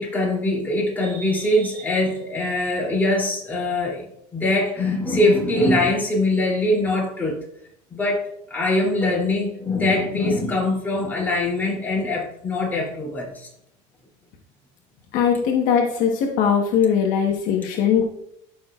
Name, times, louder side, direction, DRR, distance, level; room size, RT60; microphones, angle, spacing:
voice 1, 0.0-4.0 4.3-7.4 7.9-13.5, left 2 dB, 10° left, -4 dB, 3.1 m, -22 dB
voice 2, 15.1-18.0, left 7 dB, 60° left, 1 dB, 1.3 m, -20 dB
13.5 x 6.1 x 2.5 m, 0.74 s
supercardioid pair, 130°, 15 cm